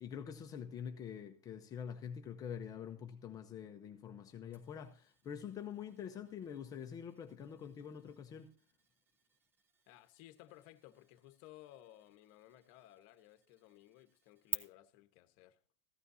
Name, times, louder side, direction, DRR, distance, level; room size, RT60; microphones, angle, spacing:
voice 1, 0.0-8.5, left 8 dB, 20° left, 0.8 m, -46 dB
sound 1, 4.5-14.5, right 4 dB, 15° right, 0.8 m, -52 dB
voice 2, 9.9-15.6, left 14 dB, 45° left, 1.2 m, -59 dB
15.0 x 12.5 x 2.7 m
supercardioid pair, 155°, 17 cm